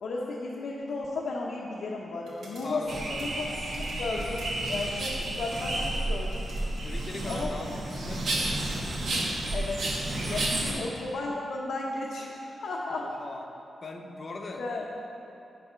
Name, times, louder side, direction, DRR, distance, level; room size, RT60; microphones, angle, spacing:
voice 1, 0.0-2.9 3.2-3.5 3.8-6.5 7.3-7.8 9.5-9.9 10.3-13.1 14.6-14.8, left 3 dB, 80° left, -4 dB, 0.8 m, -34 dB
sound 1, 2.2-7.5, right 1 dB, 85° right, 1.7 m, -51 dB
voice 2, 2.6-3.4 6.8-8.6 10.6-10.9 13.0-13.5 13.8-14.6, left 2 dB, 40° left, 3 dB, 0.7 m, -40 dB
sound 2, 2.9-10.7, right 1 dB, 65° right, 1.2 m, -31 dB
10.5 x 4.1 x 5.6 m, 2.8 s
wide cardioid pair, 140°, 0 cm